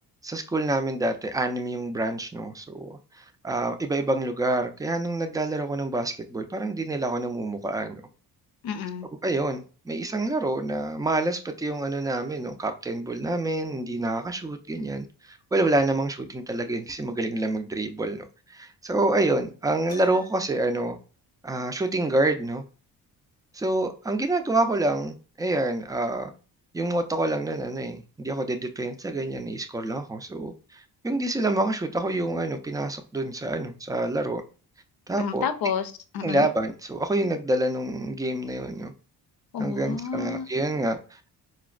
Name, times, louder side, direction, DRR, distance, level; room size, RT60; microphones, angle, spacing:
voice 1, 0.2-8.0 9.2-21.0 21.4-22.6 23.5-26.3 26.7-34.4 35.1-35.5 36.2-38.9 39.6-41.3, right 2 dB, 10° right, 0.4 m, -27 dB
voice 2, 8.6-9.1 35.2-36.5 39.5-40.5, left 6 dB, 65° left, 0.6 m, -30 dB
Piano, 19.9-20.7, left 4 dB, 25° left, 0.7 m, -45 dB
4.2 x 2.1 x 2.4 m
cardioid pair, 70°, 40 cm